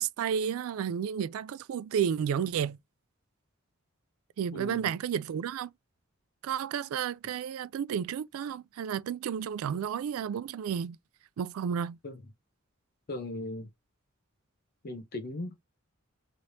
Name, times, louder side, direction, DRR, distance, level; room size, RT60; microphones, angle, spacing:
voice 1, 0.0-2.8 4.4-5.7 6.4-11.0 11.4-12.0, right 8 dB, 85° right, 0.3 m, -32 dB
voice 2, 4.5-4.9 12.0-12.2 13.1-13.7 14.8-15.7, left 2 dB, 50° left, 0.6 m, -38 dB
3.2 x 3.0 x 2.6 m
head